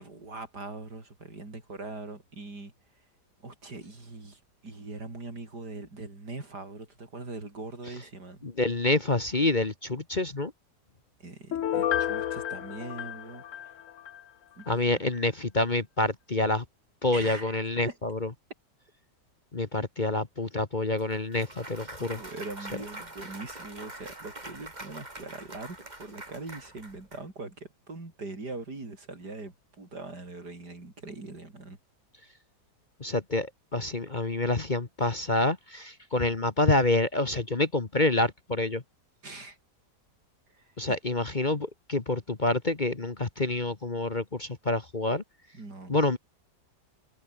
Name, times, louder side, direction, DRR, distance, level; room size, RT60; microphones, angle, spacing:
voice 1, 0.0-3.1 3.4-8.4 11.2-13.8 14.6-15.0 17.1-18.0 22.0-31.8 39.2-39.6 40.5-41.0 45.5-45.9, right 3 dB, 70° right, 5.6 m, -42 dB
voice 2, 8.4-10.5 14.7-16.6 17.0-18.2 19.5-22.2 33.0-38.8 40.8-45.2 45.9-46.2, left 2 dB, 30° left, 1.5 m, -27 dB
Piano, 11.5-14.2 14.6-14.7, left 10 dB, 60° left, 1.1 m, -31 dB
Clapping / Cheering / Applause, 21.0-27.2, right 2 dB, 25° right, 3.9 m, -44 dB
omnidirectional pair, 1.8 m